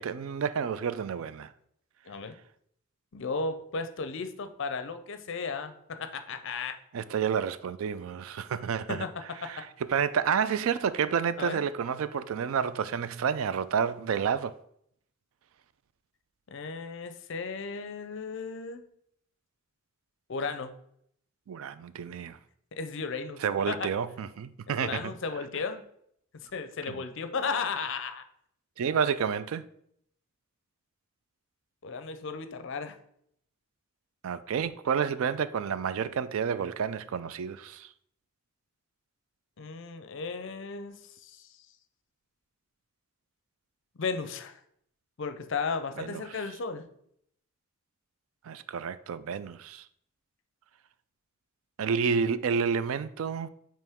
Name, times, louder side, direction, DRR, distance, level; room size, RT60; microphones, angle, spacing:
voice 1, 0.0-1.5 6.9-9.1 9.4-14.5 21.5-22.4 23.4-25.1 26.9-27.0 28.8-29.6 34.2-37.9 46.0-46.2 48.4-49.8 51.8-53.5, right 7 dB, 70° right, 0.3 m, -30 dB
voice 2, 3.1-6.8 8.9-9.1 9.4-9.6 11.4-11.6 16.5-18.8 20.3-20.7 22.7-23.9 24.8-25.8 26.3-28.2 31.8-33.0 39.6-41.0 41.2-41.5 44.0-44.6 45.2-46.9, left 4 dB, 60° left, 0.5 m, -35 dB
9.0 x 3.1 x 3.5 m
head